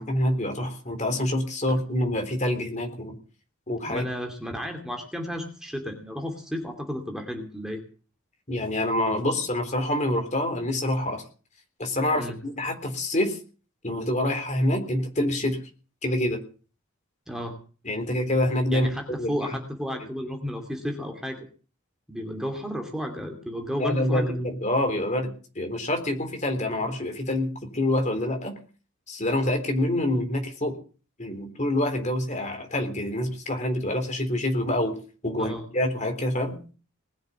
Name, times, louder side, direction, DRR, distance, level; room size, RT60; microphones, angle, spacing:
voice 1, 0.0-3.2 3.7-4.0 8.5-11.2 11.8-13.4 13.8-15.6 16.0-16.4 17.8-18.9 19.2-19.6 23.8-28.6 29.1-30.7 31.2-35.0 35.2-36.6, left 1 dB, 35° left, 5 dB, 3.6 m, -26 dB
voice 2, 3.9-7.8 12.1-12.4 17.3-17.6 18.7-21.5 22.1-24.3 35.4-35.6, equal, 5° right, 2 dB, 2.5 m, -33 dB
20.0 x 7.2 x 9.3 m, 0.39 s
head